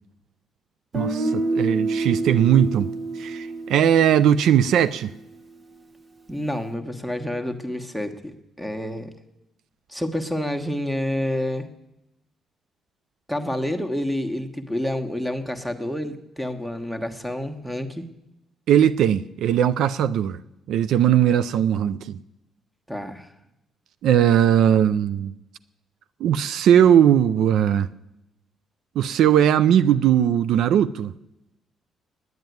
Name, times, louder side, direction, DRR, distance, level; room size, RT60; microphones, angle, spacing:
Guitar, 0.9-4.9, right 3 dB, 40° right, 1.0 m, -27 dB
voice 1, 0.9-2.9 3.2-5.1 18.7-20.4 20.7-22.2 24.0-25.3 26.2-27.9 29.0-31.1, right 10 dB, 80° right, 0.3 m, -19 dB
voice 2, 6.3-9.1 9.9-11.7 13.3-18.1 22.9-23.3, left 1 dB, 5° right, 1.2 m, -28 dB
9.4 x 8.8 x 9.3 m
cardioid pair, 90°, 0 cm